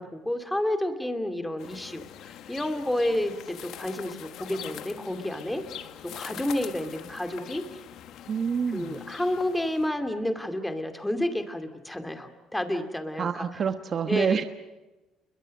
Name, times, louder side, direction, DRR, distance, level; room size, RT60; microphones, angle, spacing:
voice 1, 0.0-5.6 6.2-7.6 8.7-13.4 14.1-14.4, left 1 dB, 5° left, 7 dB, 2.5 m, -30 dB
sound 1, 1.6-9.9, left 11 dB, 70° left, 1.4 m, -43 dB
voice 2, 8.3-9.0 13.2-14.4, right 6 dB, 40° right, 9 dB, 1.2 m, -27 dB
29.0 x 23.0 x 6.6 m, 1.1 s
cardioid pair, 130°, 0 cm